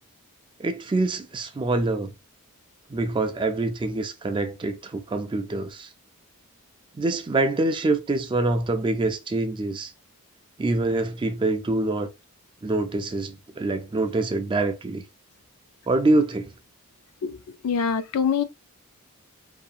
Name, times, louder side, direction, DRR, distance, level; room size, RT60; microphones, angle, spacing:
voice 1, 0.6-2.1 2.9-5.9 7.0-9.9 10.6-12.1 12.6-15.0 15.9-16.5, right 2 dB, 20° right, 0.3 m, -25 dB
voice 2, 17.2-18.4, left 6 dB, 75° left, 0.4 m, -25 dB
2.8 x 2.5 x 2.3 m
head